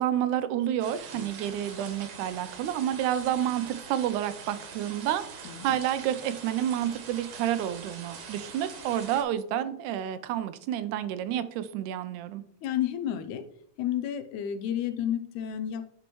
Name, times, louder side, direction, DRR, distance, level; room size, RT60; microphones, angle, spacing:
voice 1, 0.0-12.4, right 11 dB, 85° right, 12 dB, 2.0 m, -29 dB
sound 1, 0.8-9.2, right 5 dB, 65° right, 2.1 m, -44 dB
voice 2, 5.4-5.8 12.6-13.4 13.8-15.9, left 10 dB, 80° left, 9 dB, 1.9 m, -31 dB
10.5 x 4.5 x 3.0 m, 0.69 s
omnidirectional pair, 3.5 m